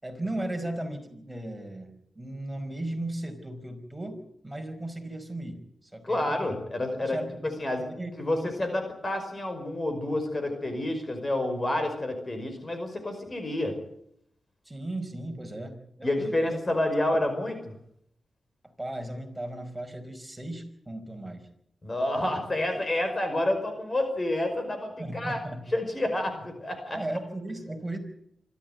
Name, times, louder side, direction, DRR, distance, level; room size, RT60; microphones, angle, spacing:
voice 1, 0.0-6.6 7.0-7.5 7.8-8.1 8.4-8.6 14.6-16.4 17.1-17.2 18.8-21.5 25.0-25.6 26.9-28.0, right 1 dB, 10° right, 5 dB, 4.9 m, -36 dB
voice 2, 6.0-7.2 7.6-7.9 8.2-13.8 16.0-17.6 21.8-25.4 25.7-27.0, left 1 dB, 30° left, 6 dB, 5.3 m, -29 dB
26.0 x 13.0 x 9.3 m, 0.72 s
cardioid pair, 80°, 0 cm